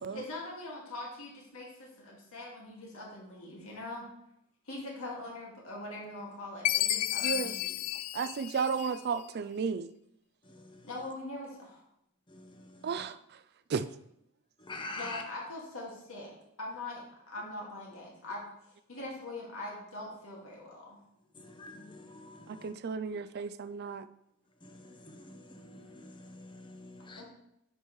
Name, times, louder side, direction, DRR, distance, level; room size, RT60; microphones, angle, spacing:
voice 1, 0.1-4.1 4.7-7.7 10.8-11.8 15.0-16.3 16.6-21.0 27.2-27.3, left 2 dB, 70° left, -3 dB, 2.1 m, -42 dB
Chime, 6.6-9.2, left 14 dB, 90° left, 0.3 m, -32 dB
voice 2, 7.2-7.5 8.1-9.9 12.8-13.2 13.7-13.9 22.5-24.1, right 5 dB, 45° right, 14 dB, 0.4 m, -33 dB
voice 3, 14.7-15.2 21.6-22.7 25.7-25.8 26.3-27.2, left 2 dB, 20° left, 3 dB, 0.8 m, -43 dB
9.7 x 5.3 x 3.1 m, 0.78 s
head